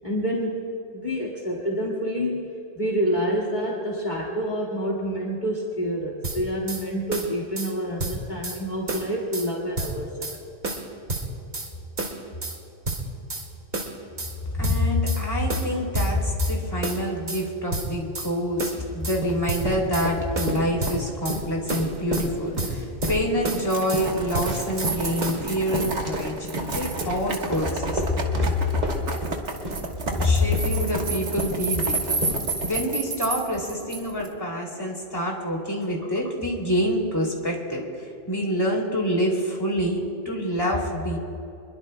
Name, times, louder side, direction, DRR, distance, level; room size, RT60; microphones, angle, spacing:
voice 1, 0.0-0.6 0.9-10.4, equal, 40° left, -4 dB, 2.1 m, -28 dB
sound 1, 6.2-6.8 7.1-7.7 8.0-8.6 8.9-9.5 9.8-10.4 10.6-11.7 12.0-12.6 12.9-13.5 13.7-14.3 14.6-15.2 15.5-16.6 16.8-17.4 17.7-18.3 18.6-19.2 19.5-20.1 20.4-21.4 21.7-22.3 22.6-23.2 23.4-24.1 24.3-24.9 25.2-25.4, right 2 dB, 50° right, 2.1 m, -31 dB
voice 2, 14.5-26.4 26.7-28.0 28.3-28.5 30.2-32.2 32.6-41.2, left 1 dB, 20° left, -2 dB, 2.7 m, -26 dB
sound 2, 19.2-21.0 21.3-28.5 28.8-32.7, equal, 35° right, 2.5 m, -31 dB
Chain On Boots, 23.7-34.3, right 4 dB, 70° right, 1.8 m, -31 dB
26.5 x 22.0 x 2.2 m, 2.8 s
omnidirectional pair, 1.3 m